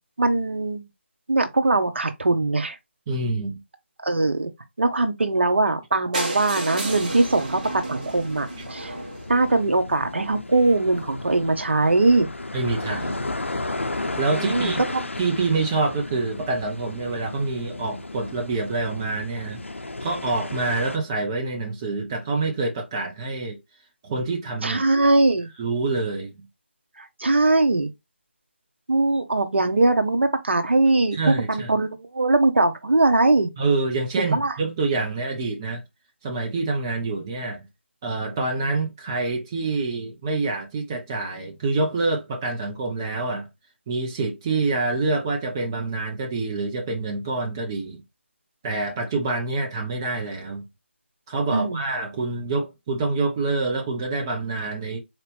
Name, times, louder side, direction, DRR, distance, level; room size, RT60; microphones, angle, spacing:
voice 1, 0.2-0.8 1.3-2.8 4.0-4.5 4.8-9.0 9.3-12.3 14.3-15.1 24.6-25.5 27.0-27.9 28.9-33.5 34.3-34.5 51.5-51.9, right 2 dB, 65° right, 0.9 m, -21 dB
voice 2, 3.1-3.6 12.5-13.3 14.2-14.8 15.2-19.6 20.0-23.6 24.0-25.1 25.6-26.3 31.1-31.7 33.6-35.8 36.2-37.6 38.0-43.5 43.9-48.0 48.6-50.6 51.3-55.0, right 3 dB, 20° right, 0.7 m, -26 dB
sound 1, 6.1-10.0 10.7-10.8 11.0-11.1 11.4-11.5 11.7-11.8, right 2 dB, 40° right, 1.3 m, -33 dB
sound 2, 6.9-21.0, left 2 dB, 80° left, 0.6 m, -34 dB
4.1 x 2.9 x 3.3 m
figure-of-eight pair, 160°, 7 cm